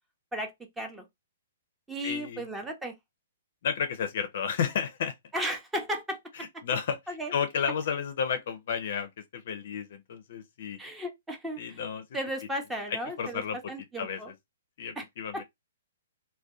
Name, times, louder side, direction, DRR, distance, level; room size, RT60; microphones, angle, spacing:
voice 1, 0.3-1.1 1.9-3.0 5.3-6.2 6.5-6.6 7.1-7.3 10.8-11.8 12.1-13.4 13.7-14.3 15.0-15.1 15.3-15.4, equal, 10° right, 0.5 m, -35 dB
voice 2, 2.0-2.5 3.6-5.1 6.4-10.8 11.6-12.0 13.2-13.7 14.0-14.3 14.8-15.4, left 7 dB, 55° left, 0.4 m, -32 dB
2.5 x 2.1 x 2.3 m
hypercardioid pair, 125°, 0 cm